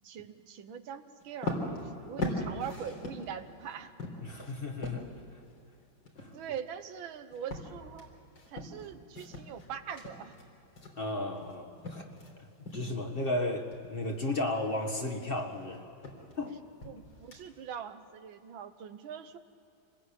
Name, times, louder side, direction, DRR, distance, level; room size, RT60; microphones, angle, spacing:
voice 1, 0.0-3.9 6.3-8.1 8.5-10.4 16.9-19.4, right 8 dB, 90° right, 9 dB, 1.9 m, -42 dB
sound 1, 1.2-12.3 12.7-13.1 13.5-17.8, left 1 dB, 75° left, 4.3 m, -41 dB
voice 2, 4.2-5.0 6.2-6.3 11.0-12.0 12.7-15.8 16.4-16.6, left 2 dB, 30° left, 2 dB, 1.8 m, -34 dB
26.5 x 20.5 x 8.8 m, 2.7 s
omnidirectional pair, 2.1 m